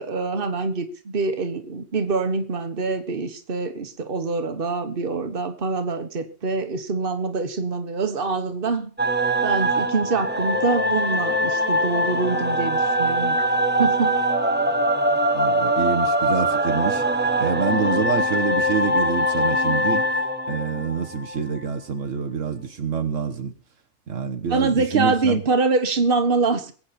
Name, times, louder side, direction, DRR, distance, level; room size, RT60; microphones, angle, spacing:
voice 1, 0.0-8.9 9.4-13.4 13.8-14.2 24.4-26.7, right 4 dB, 45° right, 8 dB, 1.5 m, -25 dB
sound 1, 9.0-21.6, equal, 10° right, 1.0 m, -22 dB
voice 2, 15.3-17.0 17.4-20.1 20.5-23.5 24.1-25.4, right 6 dB, 80° right, 5 dB, 1.6 m, -26 dB
23.0 x 8.6 x 4.3 m, 0.40 s
omnidirectional pair, 1.3 m